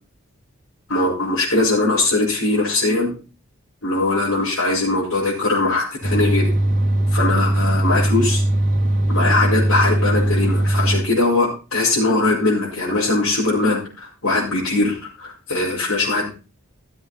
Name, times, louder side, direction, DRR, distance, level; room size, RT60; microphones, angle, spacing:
voice 1, 0.9-3.1 3.8-6.5 7.1-8.4 9.1-16.3, left 2 dB, 75° left, -8 dB, 5.6 m, -20 dB
sound 1, 6.0-11.0, right 1 dB, 40° right, 2.0 m, -19 dB
15.5 x 7.8 x 4.3 m, 0.33 s
head